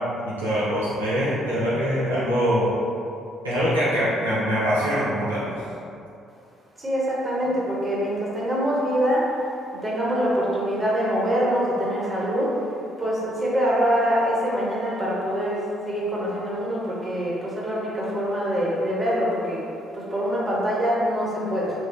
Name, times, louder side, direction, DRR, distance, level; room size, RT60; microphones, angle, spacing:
voice 1, 0.2-2.7 3.4-5.6, equal, 90° right, -11 dB, 0.6 m, -23 dB
voice 2, 6.8-9.3 9.7-12.5 13.0-19.6 19.9-21.7, equal, 25° right, -6 dB, 1.2 m, -24 dB
4.4 x 2.2 x 3.2 m, 2.6 s
figure-of-eight pair, 45°, 0 cm